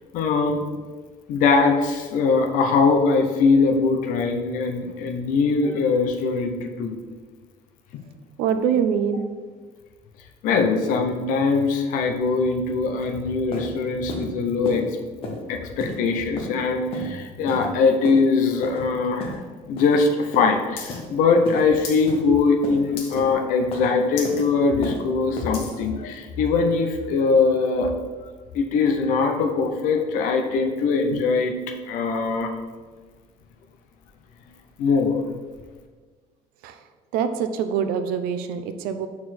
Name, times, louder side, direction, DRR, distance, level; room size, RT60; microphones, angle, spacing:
voice 1, 0.1-0.6 1.3-6.9 10.4-14.8 15.5-19.4 19.7-27.9 28.5-31.5 31.9-32.6 34.8-35.2, left 4 dB, 65° left, 4 dB, 0.7 m, -21 dB
voice 2, 8.4-9.3 36.6-36.9 37.1-39.1, right 7 dB, 80° right, 9 dB, 0.5 m, -24 dB
sound 1, 13.0-13.1 13.5-13.7 14.1-14.3 14.6-14.8 15.2-15.4 15.8-16.0 16.4-16.5 16.9-17.1 17.5-17.7 18.0-18.2 18.6-18.8 19.2-19.4 19.8-20.0 20.3-20.5 20.9-21.1 21.4-21.6 22.1-22.2 22.6-22.8 23.2-23.3 23.7-23.9 24.2-24.4 24.8-25.0 25.4-25.5, left 2 dB, 40° left, 1.1 m, -33 dB
sound 2, 20.8-21.0 21.2-22.1 22.4-22.6 23.0-23.4 23.8-23.9 24.1-24.4 24.9-25.8 26.5-26.6, left 5 dB, 90° left, 1.3 m, -36 dB
6.5 x 4.2 x 4.2 m, 1.4 s
cardioid pair, 180°, 15 cm